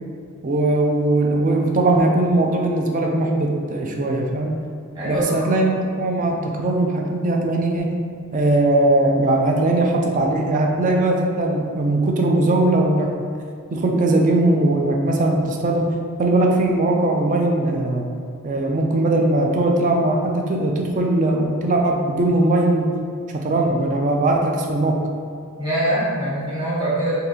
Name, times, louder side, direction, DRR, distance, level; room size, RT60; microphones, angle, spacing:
voice 1, 0.4-4.6 5.0-7.9 8.3-13.1 13.7-15.9 16.2-18.1 18.4-22.9 23.3-25.0, right 2 dB, 35° right, 1 dB, 0.4 m, -19 dB
voice 2, 4.9-5.5 25.6-27.2, right 1 dB, 20° right, -11 dB, 1.3 m, -23 dB
3.8 x 2.7 x 2.8 m, 2.2 s
head